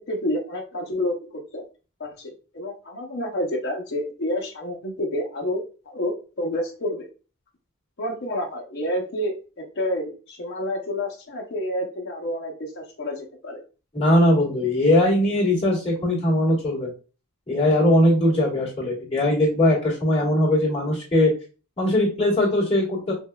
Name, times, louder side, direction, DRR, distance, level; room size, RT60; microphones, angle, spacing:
voice 1, 0.1-1.6 2.0-7.1 8.0-9.3 9.8-13.6, left 1 dB, 50° left, 0 dB, 0.7 m, -29 dB
voice 2, 13.9-16.9 17.5-21.3 21.8-23.1, left 1 dB, 30° left, -5 dB, 1.8 m, -20 dB
5.2 x 2.2 x 2.2 m, 0.34 s
head